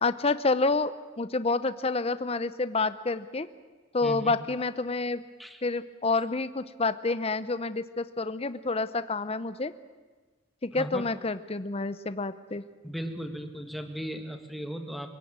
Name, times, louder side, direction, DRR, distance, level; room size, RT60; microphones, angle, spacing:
voice 1, 0.0-3.5 3.9-5.2 5.6-9.7 10.6-12.6, left 3 dB, 30° left, 13 dB, 0.7 m, -28 dB
voice 2, 4.0-4.3 5.4-5.6 10.7-11.1 12.8-15.2, equal, ahead, 5 dB, 1.6 m, -37 dB
24.5 x 17.0 x 8.8 m, 1.3 s
head